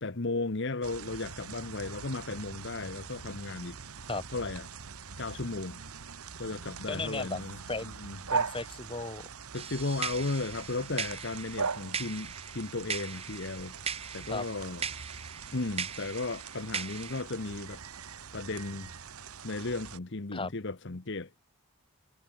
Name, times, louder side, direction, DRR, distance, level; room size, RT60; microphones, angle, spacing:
voice 1, 0.0-3.8 4.3-4.7 5.2-5.8 6.4-7.6 7.8-8.2 9.5-14.9 15.5-17.8 18.3-18.9 19.4-21.3, left 3 dB, 55° left, 1.1 m, -35 dB
sound 1, 0.8-20.0, right 5 dB, 80° right, 1.3 m, -41 dB
voice 2, 6.9-7.4 7.7-7.9 8.3-9.3 14.3-14.4 20.3-20.5, left 3 dB, 25° left, 2.1 m, -35 dB
sound 2, 9.5-17.2, right 6 dB, 25° right, 1.9 m, -39 dB
head